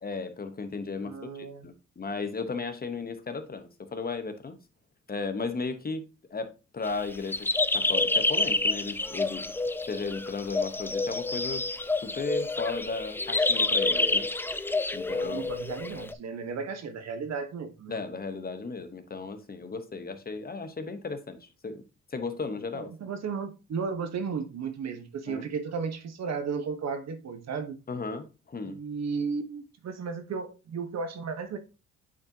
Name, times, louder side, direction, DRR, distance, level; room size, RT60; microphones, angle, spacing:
voice 1, 0.0-4.6 5.1-6.0 6.3-7.5 7.7-9.4 9.9-11.7 12.0-14.3 14.9-15.5 17.9-21.8 22.1-22.9 25.3-25.5 27.9-28.8, left 4 dB, 30° left, 1.1 m, -35 dB
voice 2, 1.0-1.7 15.1-18.0 22.7-27.8 28.7-31.6, right 5 dB, 60° right, 1.2 m, -34 dB
sound 1, 6.8-16.1, left 2 dB, 5° left, 0.4 m, -28 dB
8.6 x 4.3 x 2.8 m
cardioid pair, 90°, 30 cm